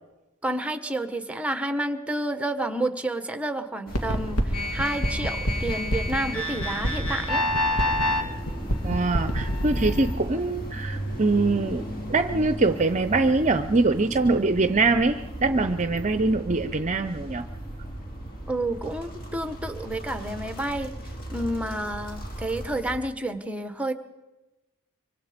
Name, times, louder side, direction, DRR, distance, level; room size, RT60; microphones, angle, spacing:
voice 1, 0.4-7.4 18.5-20.9 21.3-23.9, right 1 dB, 5° right, 9 dB, 1.2 m, -30 dB
sound 1, 3.9-10.1, equal, 80° left, 2.8 m, -26 dB
sound 2, 3.9-23.0, right 1 dB, 40° left, 3.1 m, -37 dB
voice 2, 8.8-17.4, right 3 dB, 35° right, 10 dB, 0.7 m, -23 dB
25.0 x 25.0 x 5.1 m, 1.0 s
head